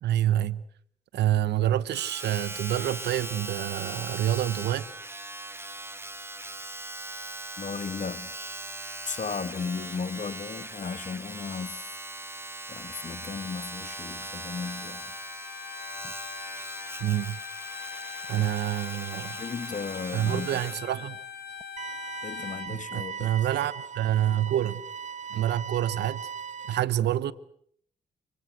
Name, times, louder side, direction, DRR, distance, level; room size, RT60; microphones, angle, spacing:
voice 1, 0.0-0.6 1.1-4.9 17.0-17.4 18.3-19.4 20.1-21.2 22.7-24.8 25.3-26.3 26.7-27.3, right 12 dB, 75° right, 1.0 m, -27 dB
Domestic sounds home sounds, 1.9-20.9 21.6-21.7, right 1 dB, 15° right, 1.9 m, -40 dB
voice 2, 7.6-8.3 9.0-11.9 12.7-15.1 16.0-16.1 19.4-20.6 22.2-23.3, left 5 dB, 45° left, 1.6 m, -35 dB
Bowed string instrument, 14.6-22.7, left 7 dB, 65° left, 3.2 m, -41 dB
sound 1, 21.8-26.8, right 6 dB, 45° right, 1.1 m, -39 dB
30.0 x 19.0 x 8.0 m
supercardioid pair, 45°, 18 cm